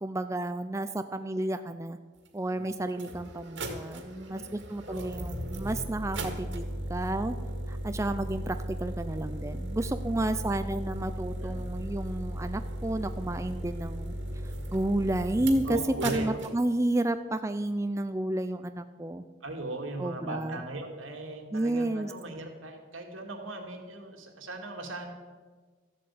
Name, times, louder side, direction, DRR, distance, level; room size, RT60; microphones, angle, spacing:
voice 1, 0.0-2.0 2.3-7.4 7.7-14.2 14.4-19.2 20.0-20.6 21.5-22.1, right 1 dB, 15° right, 9 dB, 0.4 m, -31 dB
sound 1, 2.3-2.4 2.9-16.5, right 1 dB, 70° right, 2.0 m, -36 dB
voice 2, 4.3-5.1 9.8-10.1 11.4-11.6 15.6-16.4 19.4-25.1, right 2 dB, 85° right, 2 dB, 2.3 m, -38 dB
14.0 x 7.7 x 8.5 m, 1.4 s
head